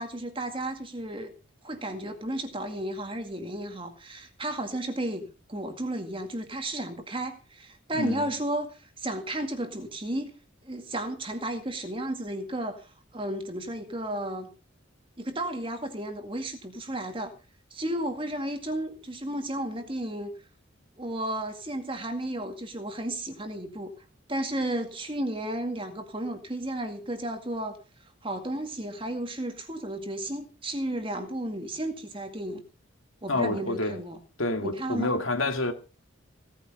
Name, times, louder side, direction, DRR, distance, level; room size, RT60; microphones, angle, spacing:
voice 1, 0.0-1.3 1.6-10.3 10.6-14.5 15.2-17.3 17.7-20.3 21.0-23.9 24.3-27.8 28.2-32.6 33.2-34.2 34.6-35.1, right 1 dB, 25° right, 2.1 m, -33 dB
voice 2, 7.9-8.3 33.3-34.0 34.4-35.7, left 2 dB, 80° left, 2.2 m, -28 dB
17.5 x 9.6 x 5.2 m
head